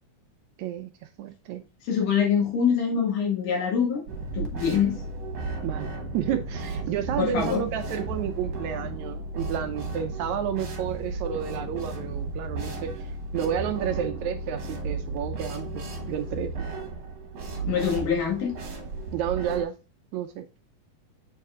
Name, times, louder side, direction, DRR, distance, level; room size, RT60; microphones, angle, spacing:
voice 1, 0.6-1.6 5.6-5.9 6.1-16.5 19.1-19.8 20.1-20.5, right 9 dB, 80° right, 1.8 m, -31 dB
voice 2, 1.9-4.0 4.3-5.0 7.2-7.6 17.7-18.5, left 7 dB, 90° left, 3.5 m, -24 dB
sound 1, 4.1-19.6, right 3 dB, 60° right, 2.2 m, -34 dB
7.4 x 4.5 x 3.6 m
omnidirectional pair, 3.6 m